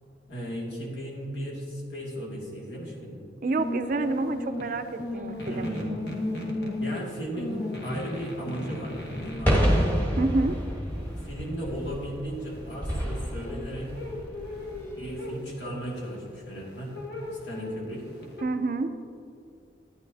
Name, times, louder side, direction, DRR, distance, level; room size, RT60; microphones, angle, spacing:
voice 1, 0.3-3.2 5.5-5.9 6.8-9.0 9.2-9.8 11.2-13.9 15.0-16.9 17.4-18.0, equal, 85° left, -4 dB, 2.2 m, -36 dB
voice 2, 3.4-5.7 10.2-10.6 18.4-18.9, right 3 dB, 50° right, 10 dB, 0.4 m, -28 dB
sound 1, 3.6-18.4, left 1 dB, 65° left, 1.3 m, -36 dB
sound 2, 9.0-15.3, equal, 10° left, 1.3 m, -29 dB
11.5 x 9.6 x 2.8 m, 2.4 s
head